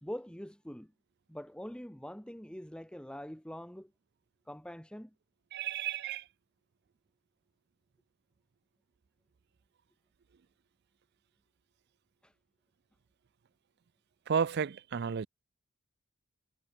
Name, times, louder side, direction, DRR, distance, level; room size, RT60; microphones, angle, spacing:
voice 1, 0.0-0.9 1.3-3.9 4.5-5.1 12.2-12.3, equal, 5° left, 1.1 m, -44 dB
voice 2, 5.5-6.2 14.3-15.3, right 7 dB, 50° right, 0.4 m, -32 dB
head